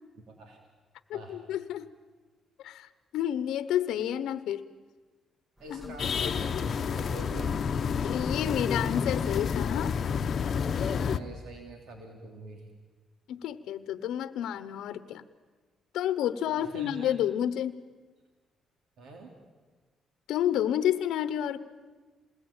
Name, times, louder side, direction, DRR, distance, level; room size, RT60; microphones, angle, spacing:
voice 1, 0.2-0.6 1.1-1.4 5.6-7.6 10.8-12.7 16.4-17.1 19.0-19.3, right 2 dB, 75° right, 2 dB, 3.6 m, -45 dB
voice 2, 1.1-1.9 2.6-4.6 5.7-6.0 8.0-10.0 13.3-15.2 15.9-17.8 20.3-21.6, left 10 dB, 85° left, 13 dB, 0.9 m, -30 dB
sound 1, 5.6-10.8, left 1 dB, 15° right, 1.7 m, -45 dB
sound 2, 6.0-11.2, left 6 dB, 55° left, 0.9 m, -29 dB
27.5 x 20.5 x 8.9 m, 1.3 s
cardioid pair, 90°, 0 cm